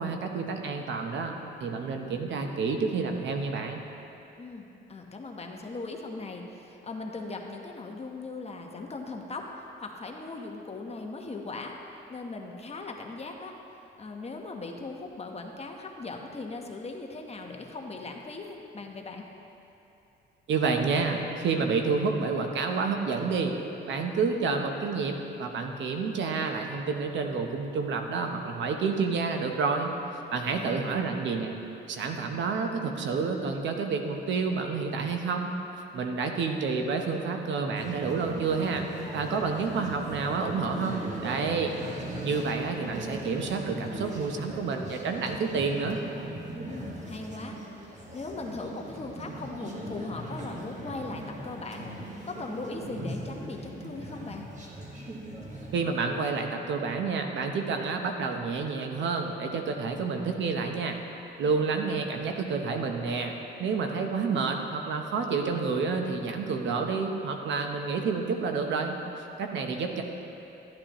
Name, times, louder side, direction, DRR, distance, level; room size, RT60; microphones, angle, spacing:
voice 1, 0.0-1.3 1.6-3.8 20.5-23.5 23.9-29.9 30.3-31.5 31.9-35.5 35.9-38.8 39.1-41.7 42.2-46.0 55.7-61.0 61.4-70.0, right 4 dB, 70° right, 4 dB, 0.9 m, -29 dB
voice 2, 4.4-11.8 12.1-13.5 14.0-19.2 30.5-31.0 46.6-47.6 47.9-51.9 52.2-54.5, left 3 dB, 30° left, 2 dB, 1.0 m, -39 dB
sound 1, 37.8-55.8, right 1 dB, 35° right, 1.6 m, -39 dB
13.0 x 8.9 x 3.0 m, 2.9 s
cardioid pair, 90°, 20 cm